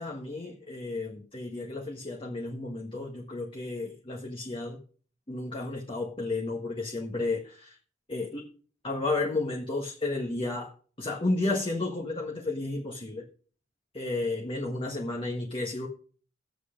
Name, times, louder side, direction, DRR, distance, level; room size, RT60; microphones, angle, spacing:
voice 1, 0.0-4.8 5.3-7.8 8.1-8.5 8.8-10.7 11.0-13.2 13.9-15.9, left 2 dB, 30° left, 0 dB, 1.4 m, -32 dB
11.0 x 7.7 x 5.1 m, 0.43 s
head